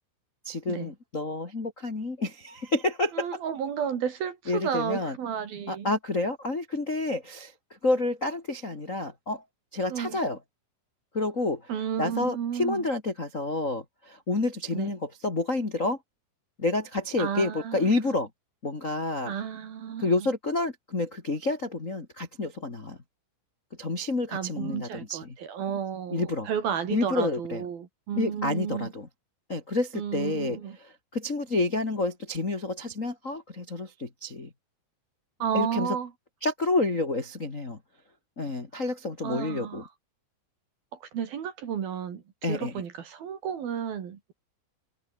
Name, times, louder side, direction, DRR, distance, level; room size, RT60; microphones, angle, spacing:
voice 1, 0.4-3.3 4.5-5.2 5.7-7.5 7.8-9.4 9.7-10.4 11.1-11.7 12.0-16.0 16.6-18.3 18.6-19.3 20.0-23.0 23.8-25.3 26.1-26.5 26.9-27.6 28.2-29.1 29.5-34.5 35.5-36.0 36.4-37.8 38.4-39.8 42.4-42.7, left 2 dB, 35° left, 1.2 m, -29 dB
voice 2, 3.1-5.9 9.9-10.2 11.7-12.9 14.7-14.9 17.2-17.9 19.3-20.3 24.3-28.9 29.9-30.8 35.4-36.1 39.2-39.9 41.0-44.3, right 8 dB, 55° right, 3.7 m, -32 dB
omnidirectional pair, 5.9 m